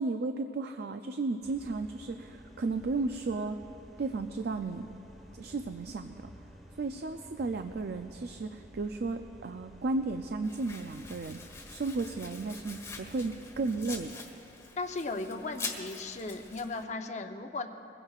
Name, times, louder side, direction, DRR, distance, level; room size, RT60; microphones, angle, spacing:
voice 1, 0.0-3.6 4.0-4.9 5.3-6.3 6.8-14.1, right 3 dB, 60° right, 7 dB, 0.4 m, -34 dB
sound 1, 1.4-14.1, equal, ahead, 1.2 m, -53 dB
Domestic sounds home sounds, 10.4-16.8, left 4 dB, 15° left, 1.4 m, -44 dB
voice 2, 14.8-17.7, left 3 dB, 40° left, 6 dB, 0.7 m, -36 dB
22.0 x 16.0 x 2.4 m, 2.9 s
head